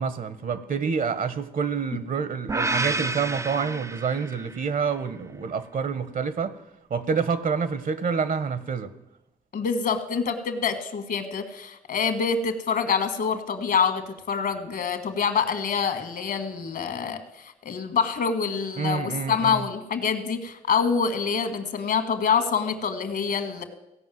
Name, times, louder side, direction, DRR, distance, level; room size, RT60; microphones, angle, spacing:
voice 1, 0.0-6.6 6.9-8.9 18.8-19.7, right 6 dB, 60° right, 14 dB, 1.2 m, -27 dB
sound 1, 2.5-4.7, right 2 dB, 20° right, 0.4 m, -29 dB
voice 2, 9.5-17.2 17.6-23.6, left 6 dB, 65° left, 9 dB, 1.7 m, -26 dB
16.0 x 5.5 x 9.3 m, 0.89 s
supercardioid pair, 50°, 16 cm